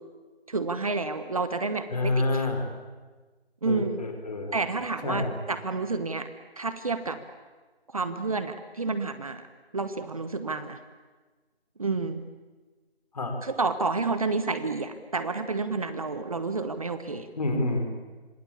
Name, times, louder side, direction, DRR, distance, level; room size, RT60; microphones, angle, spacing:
voice 1, 0.5-2.5 3.6-4.0 4.5-6.3 6.6-7.2 7.9-9.5 9.7-10.8 11.8-12.2 13.4-17.3, right 3 dB, 35° right, 10 dB, 1.3 m, -30 dB
voice 2, 1.9-2.6 3.6-4.6 5.0-5.3 13.1-13.4 17.3-17.9, left 2 dB, 40° left, 5 dB, 4.8 m, -28 dB
26.5 x 26.0 x 8.5 m, 1.3 s
figure-of-eight pair, 165°, 31 cm